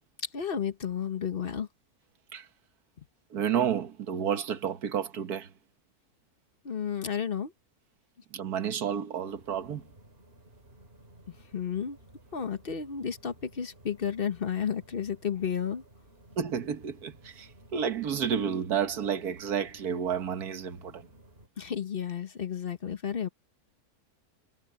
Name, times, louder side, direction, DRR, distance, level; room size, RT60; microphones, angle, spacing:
voice 1, 0.3-1.7 6.6-7.5 11.3-12.0 12.3-15.8 21.6-23.3, left 7 dB, 40° left, 1.3 m, -32 dB
voice 2, 3.3-5.5 8.3-9.8 16.4-21.1, right 8 dB, 85° right, 1.8 m, -31 dB
sound 1, 9.3-21.5, right 1 dB, 40° right, 3.8 m, -56 dB
omnidirectional pair, 1.6 m